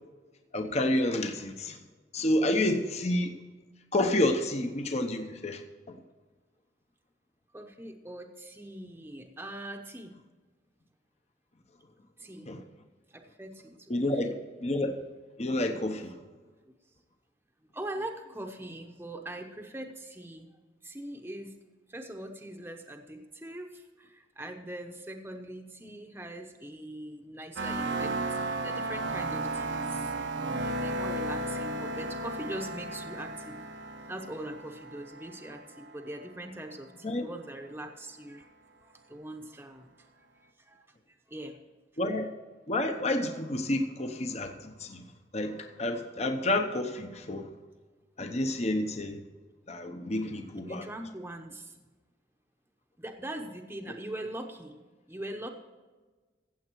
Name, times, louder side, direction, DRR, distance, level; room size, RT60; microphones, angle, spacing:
voice 1, 0.5-1.8 2.1-3.3 3.9-5.6 5.9-6.0 12.5-12.6 13.9-15.0 15.4-16.2 37.0-37.2 42.0-42.3 42.7-45.0 45.3-47.5 48.2-49.2 49.7-50.8, left 1 dB, 35° left, 6 dB, 0.9 m, -29 dB
voice 2, 7.5-10.1 12.2-12.5 13.1-14.3 17.7-20.5 20.8-21.5 21.9-30.1 30.6-33.6 34.1-38.5 38.8-41.6 50.7-51.8 53.0-54.8 55.1-55.5, right 1 dB, 10° right, 3 dB, 0.9 m, -42 dB
sound 1, 27.6-36.2, right 2 dB, 80° right, 0.9 m, -34 dB
15.0 x 7.9 x 4.6 m, 1.3 s
head